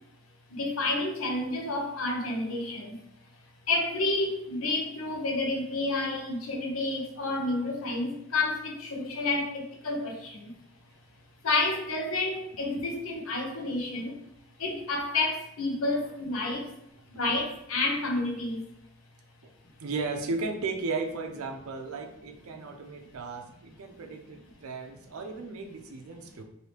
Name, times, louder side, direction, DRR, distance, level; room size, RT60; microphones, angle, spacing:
voice 1, 0.5-3.0 3.7-10.5 11.4-14.2 14.6-16.7 17.2-18.6, left 2 dB, 75° left, 1 dB, 0.7 m, -30 dB
voice 2, 19.8-26.4, right 3 dB, 90° right, 6 dB, 0.5 m, -35 dB
2.9 x 2.7 x 3.2 m, 0.77 s
head